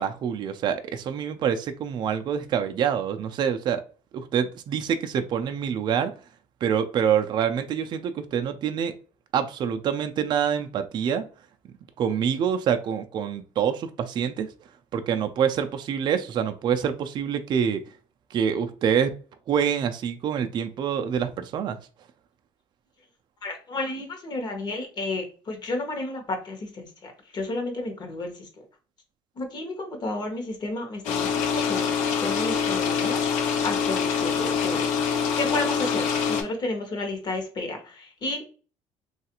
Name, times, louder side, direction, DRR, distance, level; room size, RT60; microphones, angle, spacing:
voice 1, 0.0-3.8 4.1-6.1 6.6-8.9 9.3-11.3 12.0-14.5 14.9-17.8 18.3-19.2 19.5-21.8, right 8 dB, 35° right, 0.3 m, -26 dB
voice 2, 23.4-28.5 29.4-34.8 35.4-38.5, left 2 dB, 35° left, 0.9 m, -32 dB
sound 1, 31.0-36.4, left 6 dB, 75° left, 0.7 m, -25 dB
3.2 x 2.4 x 2.8 m
cardioid pair, 145°, 12 cm